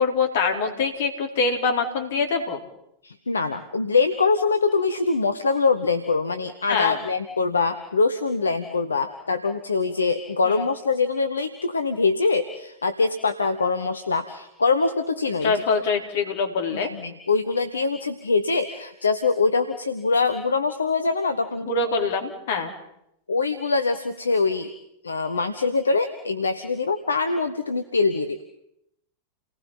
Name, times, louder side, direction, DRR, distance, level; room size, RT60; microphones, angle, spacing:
voice 1, 0.0-2.6 6.7-7.0 10.4-10.6 15.4-16.9 21.7-22.7, left 4 dB, 55° left, 4 dB, 4.0 m, -24 dB
voice 2, 3.0-15.5 16.7-21.8 23.3-24.7 25.0-28.4, left 4 dB, 75° left, 9 dB, 1.2 m, -23 dB
29.5 x 19.0 x 5.7 m, 0.78 s
figure-of-eight pair, 90°, 0 cm